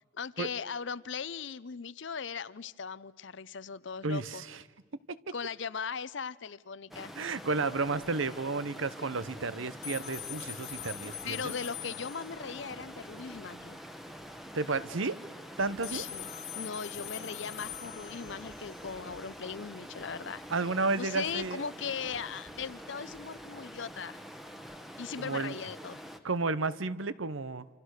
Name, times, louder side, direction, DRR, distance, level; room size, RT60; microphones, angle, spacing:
voice 1, 0.1-4.4 5.3-7.1 11.2-13.8 15.9-20.4 21.0-24.2 25.0-26.0, left 6 dB, 65° left, 18 dB, 0.7 m, -39 dB
voice 2, 4.0-4.6 5.1-5.2 7.2-11.5 14.5-15.2 15.6-16.1 20.5-21.6 25.2-25.6 26.2-27.7, right 3 dB, 80° right, 16 dB, 1.0 m, -32 dB
Stream, 6.9-26.2, equal, ahead, 1.2 m, -46 dB
sound 1, 9.8-12.7 15.8-18.8, left 13 dB, 30° left, 0.9 m, -43 dB
27.5 x 27.0 x 6.6 m, 1.5 s
head